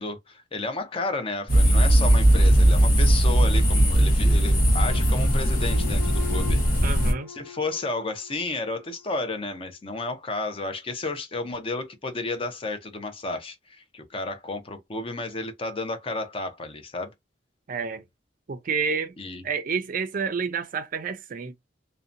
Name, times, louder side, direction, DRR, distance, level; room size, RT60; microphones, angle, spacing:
voice 1, 0.0-6.6 7.3-17.1 19.2-19.4, left 2 dB, 30° left, 0.5 m, -32 dB
sound 1, 1.5-7.1, right 1 dB, 50° left, 0.9 m, -19 dB
sound 2, 4.8-9.1, left 6 dB, 80° left, 0.8 m, -42 dB
voice 2, 6.8-7.3 17.7-18.0 18.5-19.1 19.4-21.5, right 5 dB, 45° right, 0.4 m, -29 dB
2.7 x 2.1 x 2.4 m
head